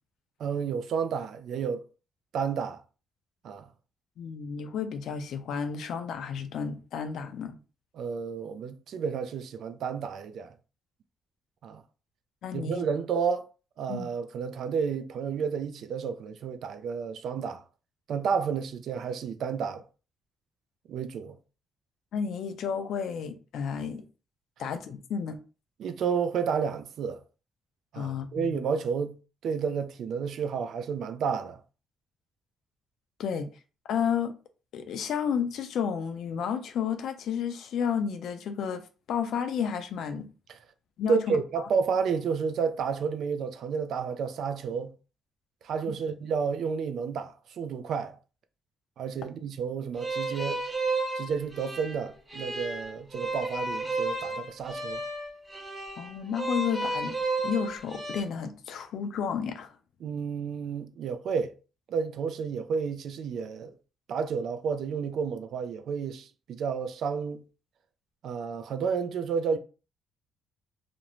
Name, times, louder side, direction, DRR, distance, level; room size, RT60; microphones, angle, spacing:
voice 1, 0.4-1.9 2.3-2.8 3.4-3.7 7.9-10.5 11.6-11.8 12.5-13.5 13.8-17.6 18.1-19.9 20.9-21.4 25.8-27.2 27.9-29.2 29.4-31.6 40.5-40.6 41.1-44.9 45.6-48.2 49.0-50.6 51.2-55.0 60.0-61.5 61.9-63.7 64.1-67.4 68.2-69.6, right 6 dB, 70° right, 0.3 m, -31 dB
voice 2, 4.2-7.6 12.4-12.8 13.9-14.1 22.1-24.1 24.6-25.4 27.9-28.6 33.2-33.5 33.9-34.3 34.7-40.3 41.0-41.4 56.0-57.2 57.4-59.7, left 7 dB, 75° left, 0.4 m, -31 dB
sound 1, 50.0-58.2, right 2 dB, 15° right, 0.9 m, -33 dB
2.5 x 2.0 x 3.0 m
cardioid pair, 90°, 0 cm